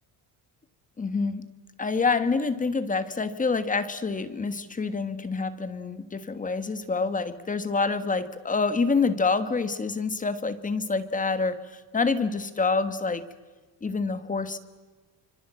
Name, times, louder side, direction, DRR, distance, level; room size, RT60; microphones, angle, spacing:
voice 1, 1.0-1.5 1.8-13.2 13.8-14.6, left 4 dB, 20° left, 11 dB, 1.4 m, -27 dB
27.5 x 25.5 x 7.7 m, 1.3 s
cardioid pair, 155°, 43 cm